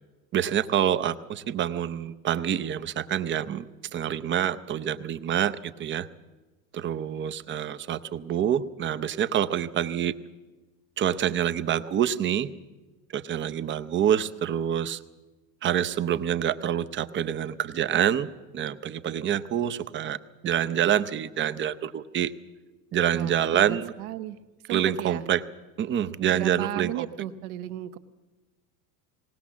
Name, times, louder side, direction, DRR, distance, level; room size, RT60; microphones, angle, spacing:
voice 1, 0.3-6.1 6.7-10.1 11.0-12.5 13.1-15.0 15.6-18.3 18.5-20.2 20.4-22.3 22.9-23.9 24.7-25.4 25.8-27.1, right 10 dB, 25° right, 12 dB, 0.6 m, -26 dB
voice 2, 23.1-24.4 24.7-25.2 26.3-28.0, right 13 dB, 70° right, 10 dB, 1.2 m, -35 dB
19.0 x 19.0 x 7.3 m, 1.2 s
supercardioid pair, 125°, 46 cm